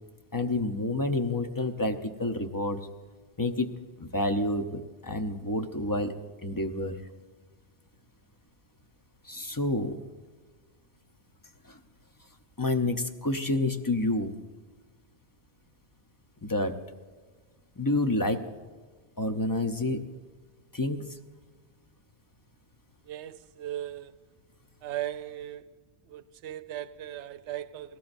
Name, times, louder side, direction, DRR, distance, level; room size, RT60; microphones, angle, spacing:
voice 1, 0.3-2.9 3.4-3.7 4.0-6.1 6.4-6.9 9.2-10.0 11.6-11.8 12.6-14.4 16.4-16.8 17.8-18.5 19.2-20.1 20.7-21.0, left 2 dB, 20° left, 0.8 m, -29 dB
voice 2, 23.1-24.2 24.8-25.7 26.1-28.0, right 12 dB, 80° right, 0.9 m, -37 dB
20.5 x 17.5 x 2.7 m
omnidirectional pair, 1.1 m